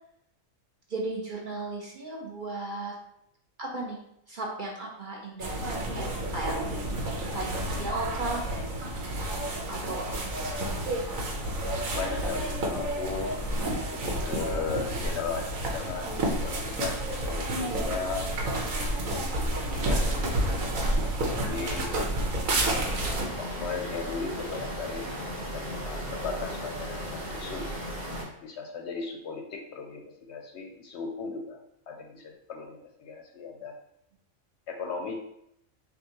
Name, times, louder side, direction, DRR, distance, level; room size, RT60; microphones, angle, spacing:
voice 1, 0.9-3.0 3.6-4.0 4.3-6.6 7.3-8.5 9.7-10.5 21.8-22.3, right 2 dB, 45° right, -2 dB, 0.8 m, -36 dB
sound 1, 5.4-23.3, right 1 dB, 85° right, 1.3 m, -30 dB
voice 2, 11.9-13.6 13.9-16.1 16.4-18.4 18.8-20.3 21.3-21.9 23.4-25.1 25.5-27.7 28.4-31.6 31.9-33.8 34.7-35.1, left 5 dB, 65° left, 2 dB, 0.8 m, -37 dB
sound 2, 22.7-28.2, equal, 60° right, 2.1 m, -36 dB
6.4 x 2.4 x 2.8 m, 0.76 s
omnidirectional pair, 1.4 m